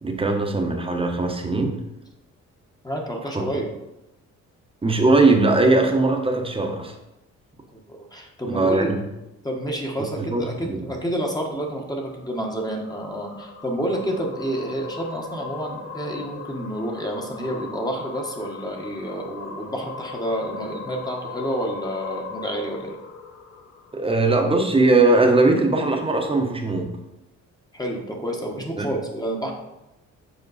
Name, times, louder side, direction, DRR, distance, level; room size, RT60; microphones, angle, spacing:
voice 1, 0.0-1.8 3.3-3.5 4.8-6.9 8.5-9.0 10.3-10.9 23.9-27.0 28.8-28.9, right 2 dB, 20° right, 3 dB, 1.1 m, -20 dB
voice 2, 2.8-3.7 7.7-8.9 9.4-23.0 27.7-29.5, equal, 15° left, 1 dB, 1.3 m, -29 dB
sound 1, 11.9-24.4, left 4 dB, 45° left, 0.9 m, -39 dB
7.2 x 4.4 x 4.1 m, 0.93 s
cardioid pair, 90°, 30 cm